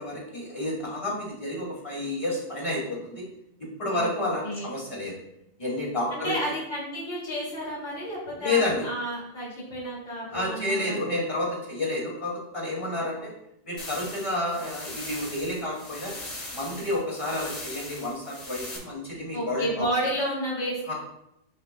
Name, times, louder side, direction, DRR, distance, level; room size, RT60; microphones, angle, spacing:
voice 1, 0.0-3.3 3.8-5.2 5.6-6.4 8.4-8.9 10.3-13.3 13.6-16.1 16.5-19.9 20.9-21.0, left 2 dB, 25° left, -4 dB, 2.4 m, -30 dB
voice 2, 6.1-11.0 19.3-20.9, equal, 60° left, -7 dB, 2.9 m, -31 dB
sound 1, 13.8-18.8, left 1 dB, 85° left, 3.2 m, -40 dB
10.0 x 5.9 x 2.3 m, 0.82 s
omnidirectional pair, 1.3 m